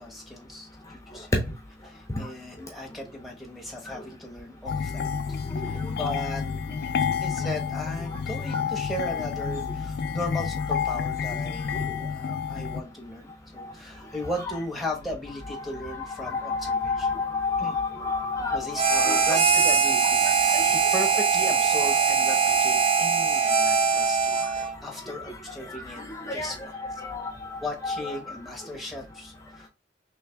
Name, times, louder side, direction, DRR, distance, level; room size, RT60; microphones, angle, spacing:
voice 1, 0.0-1.3 1.9-5.4 5.7-6.4 6.9-17.1 17.6-17.8 18.5-26.0 26.3-27.0 27.6-29.7, left 1 dB, ahead, -1 dB, 1.1 m, -37 dB
sound 1, 4.7-12.8, left 6 dB, 60° left, 0.3 m, -29 dB
voice 2, 15.5-19.2 20.5-20.7 26.0-28.2, left 3 dB, 15° left, 2 dB, 0.7 m, -30 dB
Harmonica, 18.7-24.8, right 5 dB, 30° right, 0.5 m, -22 dB
3.3 x 3.1 x 3.3 m, 0.24 s
head